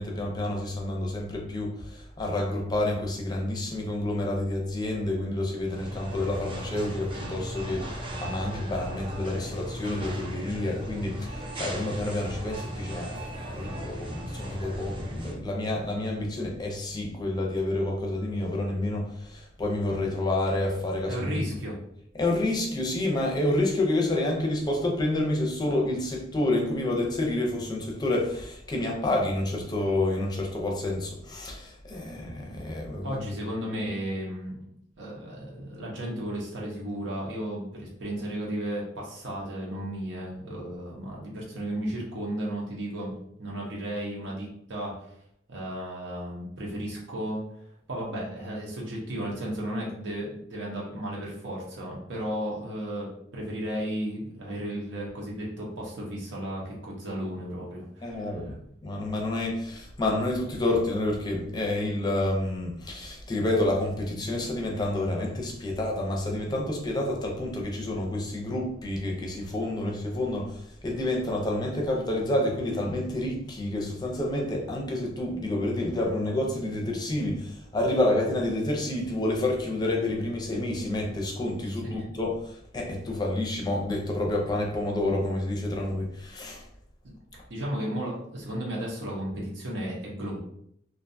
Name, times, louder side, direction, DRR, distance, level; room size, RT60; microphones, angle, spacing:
voice 1, 0.0-21.4 22.2-33.2 58.0-58.6 58.8-86.7, left 1 dB, 25° left, 0 dB, 0.5 m, -29 dB
sound 1, 5.6-15.4, equal, 30° right, 0.5 m, -37 dB
voice 2, 21.1-21.8 32.5-32.6 33.0-34.7 35.0-43.1 43.4-45.1 45.5-47.4 47.9-58.6 81.8-82.0 87.0-90.4, right 1 dB, 85° right, -4 dB, 0.7 m, -34 dB
2.5 x 2.2 x 2.5 m, 0.72 s
head